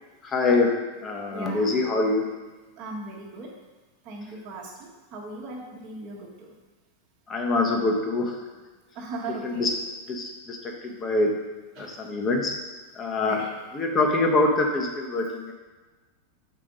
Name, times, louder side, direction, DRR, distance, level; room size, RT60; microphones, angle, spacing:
voice 1, 0.2-2.2 7.3-8.4 9.4-9.7 10.1-11.4 11.8-12.5 12.9-13.4 13.7-15.5, left 2 dB, 25° left, 1 dB, 1.1 m, -24 dB
voice 2, 1.3-1.7 2.8-3.5 4.0-6.5 8.9-9.7 11.7-11.9 13.2-13.5, right 3 dB, 35° right, -4 dB, 1.4 m, -38 dB
5.7 x 4.9 x 5.3 m, 1.3 s
figure-of-eight pair, 90°, 0 cm